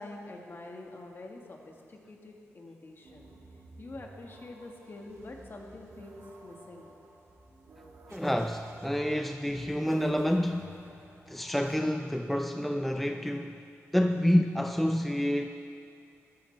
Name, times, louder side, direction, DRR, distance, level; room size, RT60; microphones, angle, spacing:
voice 1, 0.0-3.3 3.8-6.9, left 2 dB, 45° left, 1 dB, 1.5 m, -46 dB
sound 1, 3.0-11.8, right 2 dB, 65° right, 1.8 m, -53 dB
voice 2, 8.1-10.8 11.3-13.6 13.9-15.5, equal, ahead, 6 dB, 0.4 m, -28 dB
14.0 x 13.5 x 3.3 m, 2.4 s
cardioid pair, 90°, 5 cm